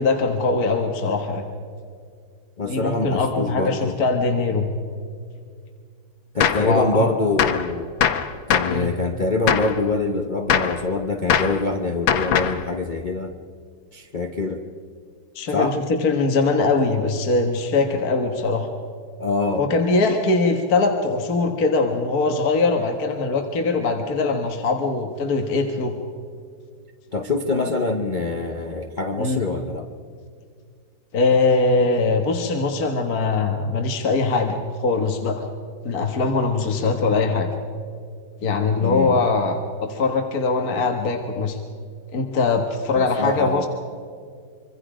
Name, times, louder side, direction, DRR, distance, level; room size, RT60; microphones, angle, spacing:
voice 1, 0.0-1.4 2.6-4.7 6.6-7.1 8.7-8.9 15.4-18.7 19.6-25.9 27.5-27.6 29.2-29.4 31.1-35.5 35.8-37.5 38.4-41.6 42.1-43.7, left 3 dB, 50° left, 3 dB, 1.9 m, -22 dB
voice 2, 2.6-4.0 6.3-7.9 8.5-13.3 13.9-14.6 15.5-15.8 19.2-19.6 27.1-29.9 38.8-39.2 42.9-43.7, left 3 dB, 35° left, 4 dB, 0.8 m, -25 dB
Gunshot gunfire, 6.4-6.7 7.4-7.7 8.0-8.8 9.5-9.8 10.5-10.8 11.3-11.6 12.1-12.6, left 8 dB, 85° left, 1.8 m, -21 dB
25.5 x 24.0 x 5.0 m, 2.1 s
omnidirectional pair, 2.1 m